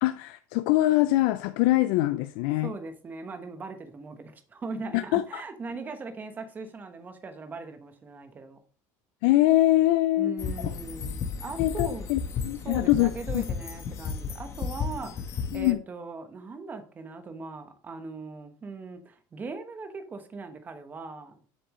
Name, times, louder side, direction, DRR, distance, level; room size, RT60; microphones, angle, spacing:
voice 1, 0.0-2.7 4.9-5.4 9.2-10.5 11.6-13.4 15.5-15.8, left 16 dB, 75° left, 0.4 m, -23 dB
voice 2, 2.6-8.6 10.2-12.1 12.6-21.3, right 4 dB, 20° right, 1.1 m, -40 dB
sound 1, 10.4-15.7, left 6 dB, 35° left, 1.1 m, -34 dB
7.5 x 6.8 x 3.1 m
cardioid pair, 145°, 8 cm